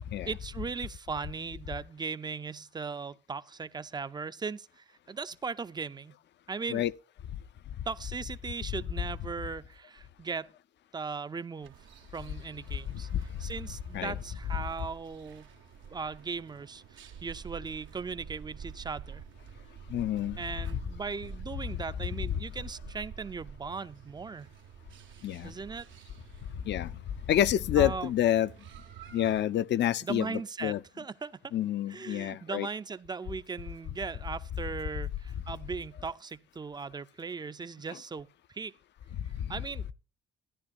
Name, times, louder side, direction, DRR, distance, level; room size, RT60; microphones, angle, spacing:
voice 1, 0.2-6.1 6.5-6.9 7.9-10.5 10.9-11.8 12.1-13.1 13.4-15.5 15.9-19.2 20.4-24.5 25.4-25.9 27.8-28.1 30.0-31.5 31.9-38.7 39.5-39.9, right 5 dB, 20° right, 0.5 m, -38 dB
sound 1, 11.6-29.4, right 7 dB, 75° right, 1.1 m, -49 dB
voice 2, 19.9-20.4 25.2-25.5 26.7-26.9 27.3-28.5 29.1-30.8 31.5-32.7, left 11 dB, 65° left, 0.6 m, -28 dB
13.5 x 10.5 x 2.5 m
cardioid pair, 90°, 20 cm